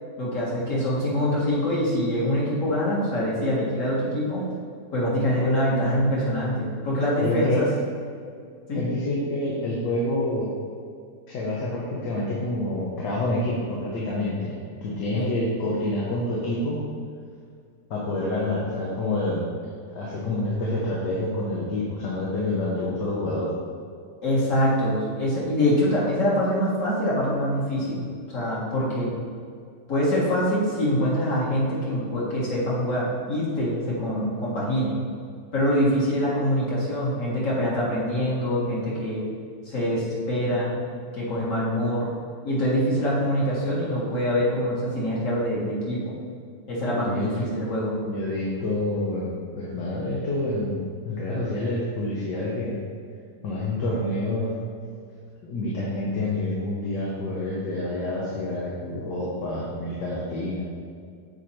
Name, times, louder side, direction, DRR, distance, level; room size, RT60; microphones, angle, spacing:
voice 1, 0.2-4.4 4.9-7.7 8.7-8.8 15.1-15.3 24.2-29.1 29.9-35.0 35.5-39.2 39.7-40.8 41.1-42.1 42.4-46.1 46.7-48.0, equal, 50° left, -6 dB, 2.1 m, -24 dB
voice 2, 7.2-7.6 8.7-10.6 11.3-14.5 14.8-16.8 17.9-19.5 19.9-23.5 47.0-47.5 48.0-52.8 53.4-54.6 55.4-60.6, left 1 dB, 80° left, -5 dB, 1.7 m, -28 dB
7.6 x 4.5 x 4.3 m, 2.2 s
omnidirectional pair, 1.8 m